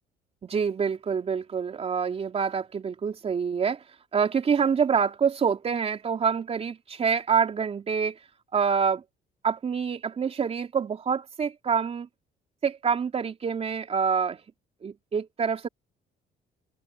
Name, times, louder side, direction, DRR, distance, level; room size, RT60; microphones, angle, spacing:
voice 1, 0.4-3.8 4.1-8.2 8.5-9.0 9.4-12.1 12.6-14.4 14.8-15.7, right 6 dB, 35° right, 3.6 m, -26 dB
open air
cardioid pair, 110°, 17 cm